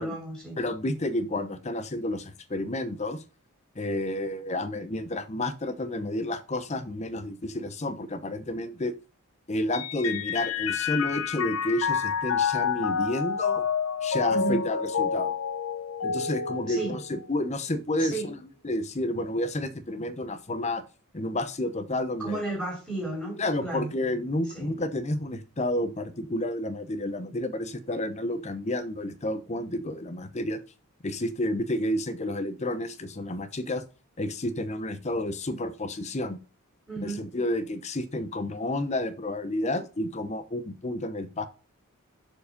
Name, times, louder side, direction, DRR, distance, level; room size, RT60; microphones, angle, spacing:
voice 1, 0.0-0.6 14.3-14.6 16.7-17.0 18.0-18.3 22.2-23.9 24.4-24.7 36.9-37.3, right 2 dB, ahead, -2 dB, 2.8 m, -33 dB
voice 2, 0.6-3.2 3.8-8.9 9.5-13.6 14.0-15.3 16.0-18.3 18.6-20.8 21.1-22.4 23.4-30.6 31.0-33.8 34.2-36.4 37.0-41.5, left 1 dB, 30° left, 12 dB, 0.8 m, -30 dB
Mallet percussion, 9.7-17.5, left 6 dB, 65° left, 0.7 m, -29 dB
6.8 x 4.8 x 5.1 m, 0.34 s
head